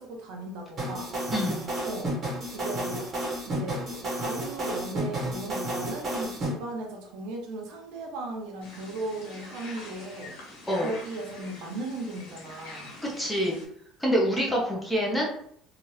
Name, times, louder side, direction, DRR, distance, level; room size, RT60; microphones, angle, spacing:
voice 1, 0.0-1.1 1.8-2.1 2.5-3.1 3.5-10.4 10.7-12.9, right 2 dB, 65° right, 1 dB, 0.7 m, -37 dB
sound 1, 0.8-6.5, right 1 dB, 25° right, 0.9 m, -31 dB
sound 2, 8.6-13.6, left 2 dB, 90° left, 1.2 m, -45 dB
voice 2, 13.2-13.6 14.0-15.3, equal, 5° left, -3 dB, 0.6 m, -26 dB
2.8 x 2.4 x 3.1 m, 0.66 s
cardioid pair, 175°, 0 cm